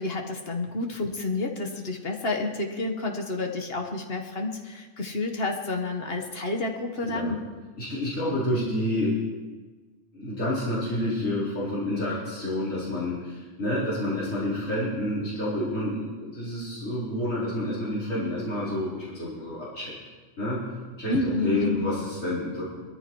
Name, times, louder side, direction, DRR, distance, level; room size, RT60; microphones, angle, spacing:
voice 1, 0.0-7.4 21.1-21.9, left 2 dB, 50° left, 2 dB, 1.6 m, -29 dB
voice 2, 7.1-7.4 7.8-9.2 10.1-19.9 20.4-20.6 21.0-22.6, left 1 dB, 85° left, -10 dB, 4.5 m, -29 dB
21.0 x 14.0 x 3.1 m, 1.3 s
omnidirectional pair, 1.3 m